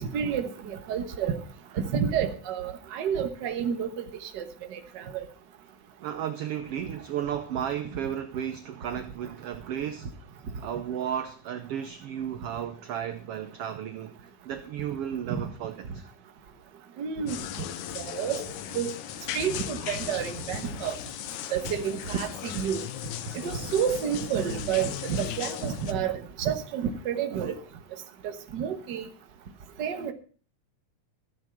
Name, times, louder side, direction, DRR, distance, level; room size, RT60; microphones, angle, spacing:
voice 1, 0.0-1.4 1.8-4.4 4.7-5.2 15.3-15.5 17.0-17.4 17.9-18.4 18.7-18.9 19.3-20.9 21.5-22.8 23.4-27.5 28.2-29.1 29.8-30.1, right 8 dB, 50° right, 1.5 m, -30 dB
voice 2, 6.0-10.1 10.6-16.1 19.8-19.9, right 9 dB, 65° right, 1.5 m, -34 dB
sound 1, 17.3-25.9, left 11 dB, 85° left, 2.2 m, -37 dB
14.5 x 8.0 x 5.9 m
omnidirectional pair, 3.4 m